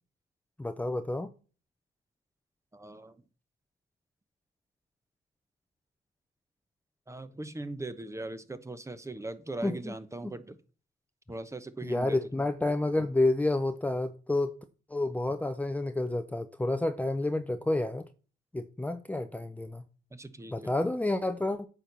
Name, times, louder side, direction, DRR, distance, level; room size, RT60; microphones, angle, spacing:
voice 1, 0.6-1.3 9.6-9.9 10.2-10.3 11.8-14.5 14.9-18.0 18.5-19.8 20.5-21.7, left 2 dB, 10° left, 0.7 m, -29 dB
voice 2, 2.7-3.1 7.1-10.6 11.3-12.2 20.1-20.5, right 2 dB, 15° right, 0.9 m, -40 dB
9.0 x 4.5 x 6.7 m
cardioid pair, 90°, 20 cm